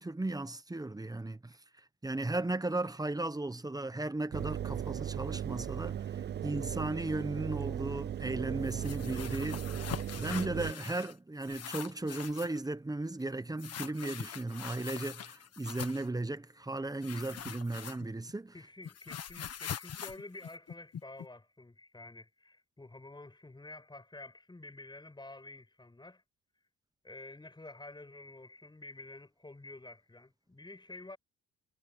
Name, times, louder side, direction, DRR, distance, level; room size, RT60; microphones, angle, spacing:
voice 1, 0.0-1.6 2.0-6.0 6.4-9.9 10.1-18.5, right 2 dB, 10° right, 1.2 m, -36 dB
Engine, 4.3-10.7, right 10 dB, 35° right, 0.4 m, -37 dB
sound 1, 8.7-11.1 11.4-12.6 13.6-16.1 17.0-18.3 18.6-21.3, left 9 dB, 55° left, 1.7 m, -43 dB
voice 2, 18.5-26.2 27.0-31.2, left 2 dB, 15° left, 6.2 m, -49 dB
cardioid pair, 90°, 30 cm